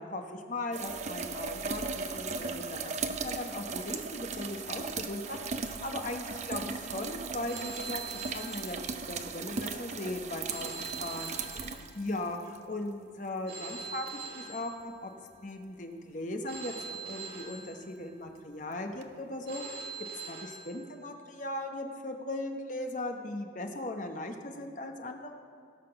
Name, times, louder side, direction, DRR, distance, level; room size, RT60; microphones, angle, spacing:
voice 1, 0.0-2.9 3.2-8.8 9.1-10.7 11.0-11.4 11.7-15.1 15.4-16.7 17.0-19.8 20.3-25.3, left 1 dB, 40° left, 4 dB, 0.9 m, -38 dB
sound 1, 0.7-12.6 14.1-14.2 19.0-19.1, right 4 dB, 35° right, 0.5 m, -37 dB
Telephone, 7.5-9.3 10.5-12.3 13.5-15.3 16.5-18.3 19.5-21.3, right 4 dB, 55° right, 1.8 m, -44 dB
17.0 x 5.9 x 5.8 m, 2.4 s
head